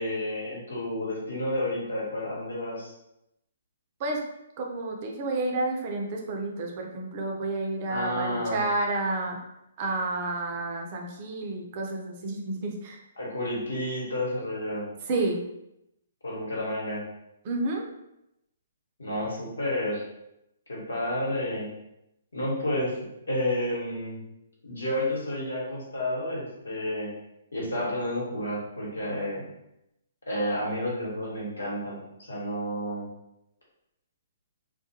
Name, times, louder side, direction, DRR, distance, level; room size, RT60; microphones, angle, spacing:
voice 1, 0.0-2.9 7.9-8.6 13.2-14.9 16.2-17.0 19.0-20.0 20.7-21.7 22.3-23.0 23.3-24.2 24.6-27.1 27.5-29.4 30.3-33.1, left 1 dB, 85° left, -5 dB, 1.1 m, -30 dB
voice 2, 4.6-9.4 9.8-13.0 15.1-15.4 17.4-17.8, right 2 dB, 40° right, 0 dB, 0.5 m, -30 dB
2.4 x 2.1 x 2.8 m, 0.85 s
hypercardioid pair, 135°, 0 cm